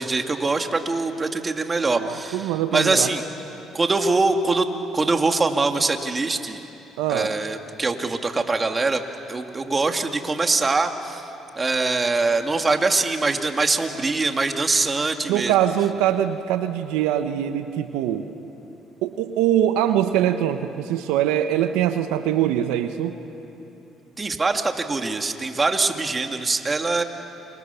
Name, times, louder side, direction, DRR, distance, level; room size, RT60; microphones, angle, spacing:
voice 1, 0.0-3.2 3.7-4.7 4.9-6.6 7.1-9.0 9.3-11.3 11.6-15.5 24.2-27.0, right 3 dB, 25° right, 5 dB, 2.3 m, -23 dB
voice 2, 1.9-3.1 7.0-7.3 15.3-18.3 19.0-23.2, right 11 dB, 85° right, 8 dB, 1.1 m, -23 dB
29.5 x 26.5 x 7.0 m, 3.0 s
supercardioid pair, 75°, 0 cm